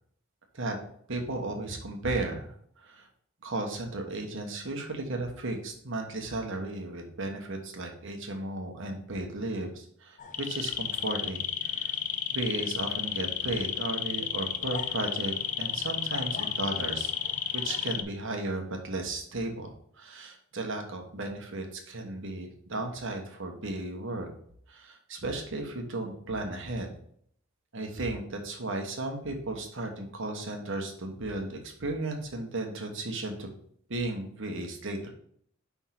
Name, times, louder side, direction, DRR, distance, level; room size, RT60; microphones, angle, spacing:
voice 1, 1.1-2.5 2.8-3.1 3.4-11.9 12.3-17.1 17.5-19.7 20.0-24.3 24.7-26.9 27.7-33.5 33.9-35.1, right 2 dB, 65° right, 3 dB, 1.2 m, -35 dB
sound 1, 10.2-18.0, left 9 dB, 35° left, 0.4 m, -32 dB
5.5 x 3.5 x 5.8 m, 0.64 s
head